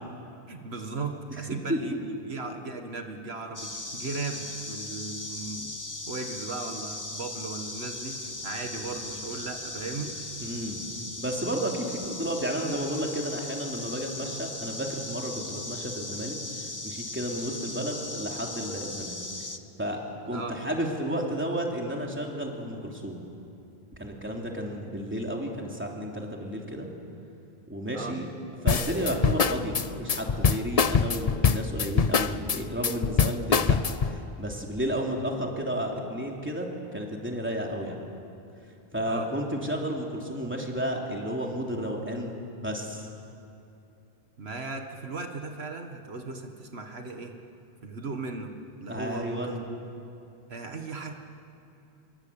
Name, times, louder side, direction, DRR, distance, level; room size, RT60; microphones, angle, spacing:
voice 1, 0.5-5.7 6.1-10.3 20.3-20.6 27.9-28.2 39.1-39.3 44.4-47.3 47.8-48.5 48.8-49.8 50.5-51.1, right 3 dB, 75° right, 4 dB, 1.9 m, -37 dB
voice 2, 1.4-2.0 10.4-10.8 11.2-16.4 16.8-19.2 19.8-20.0 20.2-23.2 24.0-26.9 27.7-28.3 28.6-38.0 38.9-43.1 48.9-49.6, equal, 10° right, -1 dB, 3.3 m, -32 dB
sound 1, 3.6-19.6, left 2 dB, 20° left, 1.1 m, -38 dB
sound 2, 28.7-34.2, left 5 dB, 40° left, 0.8 m, -23 dB
27.5 x 23.5 x 8.8 m, 2.7 s
omnidirectional pair, 1.1 m